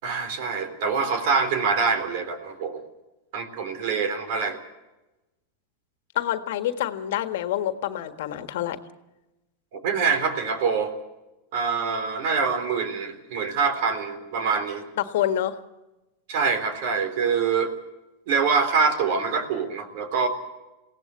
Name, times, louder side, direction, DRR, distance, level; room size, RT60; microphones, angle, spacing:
voice 1, 0.0-2.8 3.3-4.6 9.7-10.9 11.5-14.8 16.3-17.7 18.3-20.3, right 5 dB, 65° right, 9 dB, 3.8 m, -25 dB
voice 2, 6.1-8.8 15.0-15.6, left 12 dB, 70° left, 9 dB, 1.6 m, -27 dB
22.0 x 17.0 x 8.3 m, 1.0 s
hypercardioid pair, 105°, 0 cm